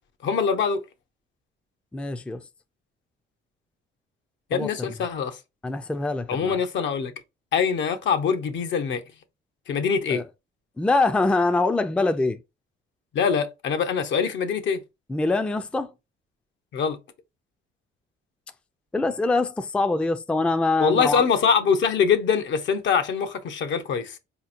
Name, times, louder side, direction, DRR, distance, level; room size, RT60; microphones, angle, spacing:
voice 1, 0.2-0.8 4.5-5.4 6.3-7.1 7.5-9.0 9.7-10.2 13.1-14.8 16.7-17.0 20.8-24.2, left 6 dB, 70° left, 0.7 m, -23 dB
voice 2, 1.9-2.4 4.5-4.9 5.6-6.6 10.1-10.2 10.8-12.4 15.1-15.9 18.9-21.2, left 3 dB, 5° left, 0.3 m, -24 dB
4.1 x 2.9 x 2.5 m
cardioid pair, 90°, 20 cm